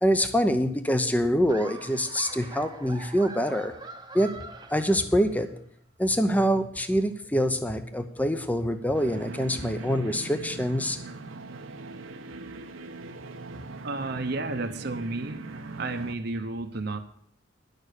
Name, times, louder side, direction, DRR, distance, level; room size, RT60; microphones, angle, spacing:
voice 1, 0.0-3.7 4.1-4.3 4.7-5.5 6.0-11.0, equal, 10° left, 8 dB, 0.7 m, -25 dB
Laughter, 1.5-5.5, right 3 dB, 20° right, 0.9 m, -44 dB
sound 1, 8.9-16.1, right 3 dB, 80° right, 1.0 m, -41 dB
voice 2, 13.8-15.4 15.8-17.0, right 2 dB, 55° right, 6 dB, 0.9 m, -32 dB
11.0 x 6.7 x 8.2 m, 0.65 s
head